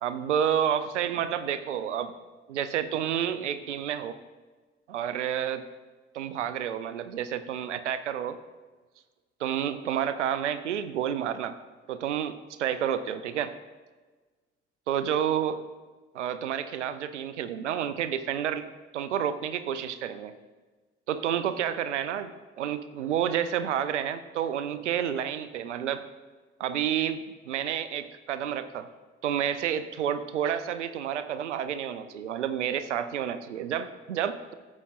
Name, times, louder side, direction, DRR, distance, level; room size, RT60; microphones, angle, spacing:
voice 1, 0.0-2.1 2.5-4.2 4.9-5.6 6.1-8.4 9.4-11.6 11.9-13.5 14.9-15.6 16.1-18.7 18.9-20.3 21.1-22.3 22.6-26.0 26.6-28.9 29.2-34.5, right 9 dB, 85° right, 12 dB, 0.5 m, -30 dB
15.0 x 7.3 x 2.5 m, 1.3 s
figure-of-eight pair, 45°, 35 cm